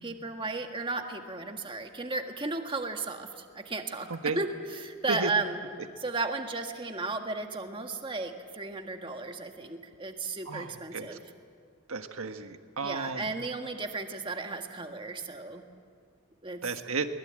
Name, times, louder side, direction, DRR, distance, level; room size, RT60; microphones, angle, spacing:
voice 1, 0.0-4.1 4.3-5.6 6.0-11.2 12.8-15.6 16.4-16.6, right 3 dB, 25° right, 4 dB, 1.7 m, -34 dB
voice 2, 10.5-11.2 11.9-13.3 16.6-17.1, right 4 dB, 75° right, 7 dB, 1.6 m, -33 dB
23.5 x 21.0 x 8.9 m, 2.3 s
head